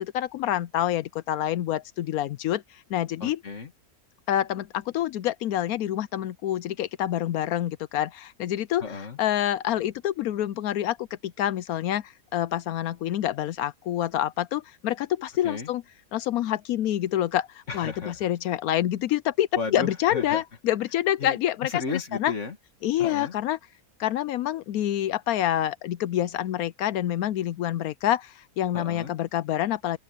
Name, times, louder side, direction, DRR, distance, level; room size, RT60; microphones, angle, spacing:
voice 1, 0.1-1.0 1.3-2.6 2.9-3.4 4.3-4.6 4.9-8.1 8.4-8.8 9.2-10.9 11.4-12.0 12.3-14.9 15.4-15.8 16.1-17.4 17.7-21.8 22.2-22.3 22.8-23.6 24.0-28.2 28.6-30.0, left 12 dB, 75° left, 1.0 m, -26 dB
voice 2, 3.2-3.7 8.8-9.2 15.4-15.7 17.7-18.3 19.6-20.4 21.2-22.6 23.0-23.3 28.7-29.2, left 4 dB, 50° left, 2.3 m, -34 dB
open air
omnidirectional pair, 1.6 m